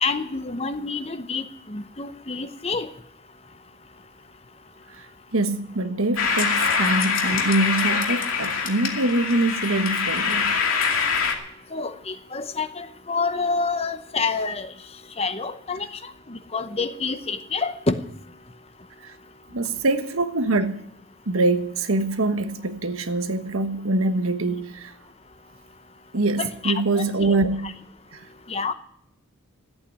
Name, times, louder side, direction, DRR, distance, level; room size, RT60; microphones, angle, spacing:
voice 1, 0.0-2.9 11.7-14.7 15.2-18.0 26.4-27.7 28.5-28.7, left 4 dB, 30° left, 0.8 m, -28 dB
voice 2, 5.3-10.5 19.0-19.1 19.5-20.8 21.3-24.9 26.1-27.8 28.1-28.2, right 2 dB, 80° right, 1.3 m, -24 dB
sound 1, 6.2-11.3, left 5 dB, 80° left, 2.3 m, -24 dB
14.0 x 8.6 x 9.8 m
head